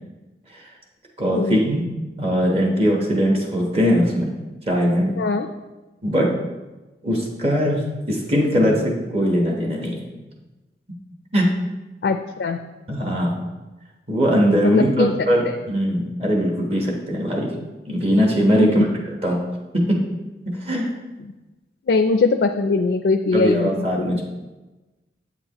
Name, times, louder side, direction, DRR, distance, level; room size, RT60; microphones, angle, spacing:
voice 1, 1.2-1.8 2.2-4.3 4.7-5.1 6.0-6.3 7.0-7.8 8.1-8.8 9.1-10.0 11.3-11.5 12.9-13.4 14.1-17.5 17.9-18.9 19.2-19.4 19.7-20.0 20.5-20.9 23.3-24.2, equal, 35° right, -1 dB, 1.1 m, -20 dB
voice 2, 5.2-5.5 12.0-12.6 14.6-15.1 18.5-18.9 21.9-24.2, left 3 dB, 70° left, 7 dB, 0.4 m, -21 dB
8.1 x 7.3 x 2.9 m, 1.1 s
head